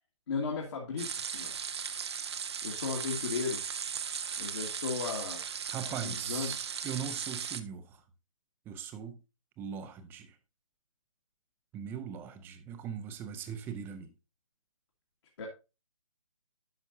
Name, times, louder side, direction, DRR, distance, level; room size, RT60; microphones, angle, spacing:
voice 1, 0.3-1.6 2.6-3.6 4.4-5.4 5.9-6.5 15.4-15.5, left 5 dB, 50° left, 1.9 m, -35 dB
sound 1, 1.0-7.6, right 7 dB, 50° right, 0.9 m, -37 dB
voice 2, 5.7-8.0 8.7-9.2 9.6-10.4 11.7-14.1, right 8 dB, 10° right, 0.7 m, -40 dB
11.0 x 6.6 x 2.6 m
figure-of-eight pair, 140°, 17 cm